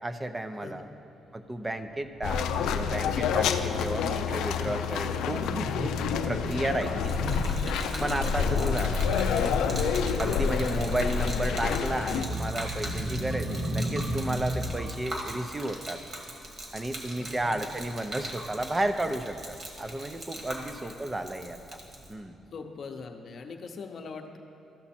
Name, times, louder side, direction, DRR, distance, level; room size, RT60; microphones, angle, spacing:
voice 1, 0.0-0.9 1.3-5.9 6.3-7.4 8.0-9.1 9.4-9.5 10.2-16.0 16.7-21.6 22.1-22.4, right 1 dB, 20° right, 8 dB, 0.6 m, -33 dB
sound 1, 1.6-14.7, equal, 75° right, 1.6 m, -36 dB
sound 2, 2.2-12.2, left 6 dB, 85° left, 0.4 m, -28 dB
Gurgling / Liquid, 6.7-22.1, right 1 dB, 35° right, 1.6 m, -41 dB
voice 2, 8.3-8.9 13.4-13.7 15.1-15.3 17.2-17.5 20.6-21.4 22.5-24.4, left 4 dB, 50° left, 5 dB, 0.8 m, -42 dB
13.5 x 5.9 x 4.3 m, 2.7 s
cardioid pair, 90°, 0 cm